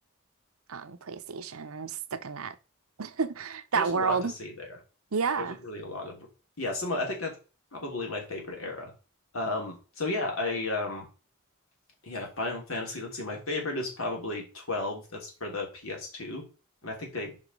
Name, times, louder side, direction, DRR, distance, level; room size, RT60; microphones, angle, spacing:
voice 1, 0.7-2.6 3.0-4.3 5.1-5.6, right 5 dB, 90° right, 0.8 m, -30 dB
voice 2, 3.7-4.7 5.4-6.3 6.6-7.4 7.7-8.9 9.3-11.1 12.0-16.4 16.8-17.4, left 2 dB, 75° left, 3.0 m, -33 dB
5.4 x 5.0 x 5.3 m
head